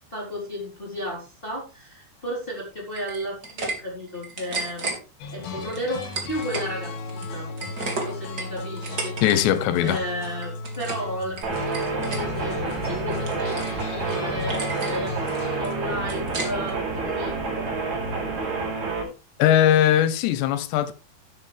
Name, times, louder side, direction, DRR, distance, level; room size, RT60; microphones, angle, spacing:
voice 1, 0.1-4.9 5.3-7.5 7.9-9.4 9.8-17.7, equal, 15° left, 3.9 m, -33 dB
sound 1, 2.9-3.8 4.1-5.0 5.7-6.7 7.0-9.4 9.7-10.0 10.4-11.1 11.4-12.2 12.7-13.8 14.1-14.2 14.5-15.0 15.3-16.8, right 3 dB, 30° right, 2.7 m, -33 dB
sound 2, 5.2-16.0, left 2 dB, 65° left, 3.6 m, -35 dB
voice 2, 9.2-10.0 19.4-20.9, left 11 dB, 90° left, 3.2 m, -20 dB
sound 3, 11.4-19.0, right 3 dB, 45° right, 6.2 m, -29 dB
12.5 x 10.0 x 3.4 m
omnidirectional pair, 4.8 m